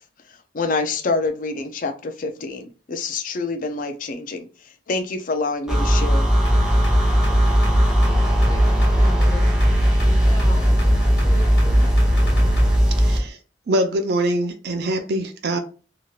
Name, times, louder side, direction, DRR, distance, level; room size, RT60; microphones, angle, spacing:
voice 1, 0.5-4.5 4.9-6.3, left 3 dB, 50° left, 8 dB, 0.5 m, -26 dB
sound 1, 5.7-13.2, equal, 5° right, 0.8 m, -17 dB
sound 2, 6.4-12.8, equal, 70° left, 1.5 m, -29 dB
voice 2, 8.2-9.6 10.0-12.0, left 1 dB, 20° left, -1 dB, 1.2 m, -38 dB
voice 3, 13.0-13.4 13.7-15.6, right 1 dB, 65° right, 7 dB, 0.4 m, -23 dB
3.0 x 2.8 x 2.3 m, 0.36 s
head